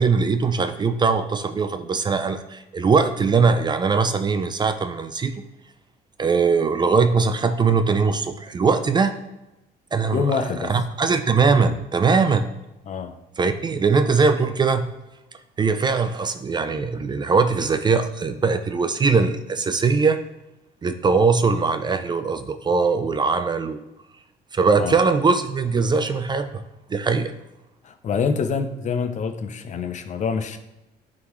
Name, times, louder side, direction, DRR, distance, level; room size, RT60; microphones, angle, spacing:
voice 1, 0.0-5.3 6.2-9.2 9.9-12.5 13.4-14.9 15.6-20.2 20.8-23.8 24.5-26.6 26.9-27.3, right 4 dB, 25° right, 9 dB, 0.4 m, -21 dB
voice 2, 10.1-10.7 12.9-13.1 24.8-25.0 27.8-30.6, left 5 dB, 45° left, 8 dB, 0.7 m, -26 dB
9.5 x 3.8 x 3.1 m, 0.95 s
cardioid pair, 110°, 17 cm